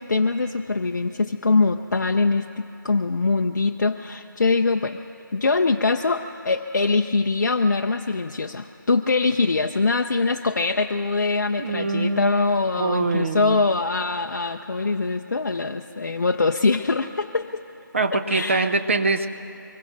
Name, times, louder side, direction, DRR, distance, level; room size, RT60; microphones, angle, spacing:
voice 1, 0.0-5.0 5.3-17.6 18.3-18.7, left 3 dB, 55° left, 5 dB, 0.5 m, -23 dB
voice 2, 11.6-12.3 12.8-13.6 17.9-19.3, right 3 dB, 35° right, 7 dB, 0.7 m, -23 dB
24.5 x 21.5 x 2.6 m, 2.8 s
figure-of-eight pair, 165°, 11 cm